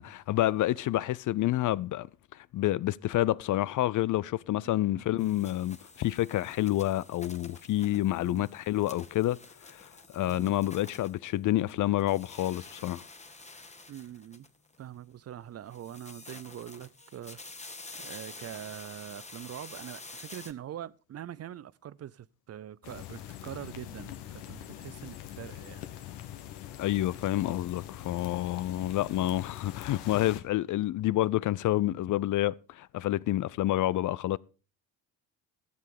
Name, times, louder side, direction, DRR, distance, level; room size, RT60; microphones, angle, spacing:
voice 1, 0.0-2.1 2.3-13.0 26.8-34.4, left 15 dB, 50° left, 0.5 m, -28 dB
sound 1, 5.2-11.7 12.0-14.8 15.7-20.5, left 3 dB, 15° left, 1.5 m, -49 dB
voice 2, 13.9-14.5 14.8-17.4 18.0-25.9, right 11 dB, 35° right, 0.5 m, -43 dB
sound 2, 22.8-30.4, left 12 dB, 70° left, 1.4 m, -43 dB
13.5 x 7.5 x 5.1 m
hypercardioid pair, 60°, 42 cm